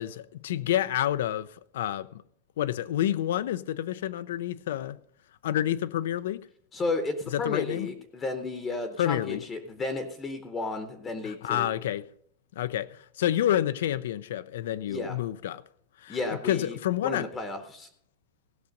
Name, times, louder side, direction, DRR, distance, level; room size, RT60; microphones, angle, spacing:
voice 1, 0.0-1.5 1.7-2.2 2.6-5.0 5.4-6.4 7.3-7.9 9.0-9.4 11.2-12.0 12.6-15.6 16.0-16.2 16.4-17.2, left 12 dB, 80° left, 0.4 m, -28 dB
voice 2, 6.7-11.7 14.9-15.2 16.1-17.9, left 3 dB, 15° left, 0.8 m, -33 dB
16.0 x 5.9 x 5.2 m
supercardioid pair, 165°, 0 cm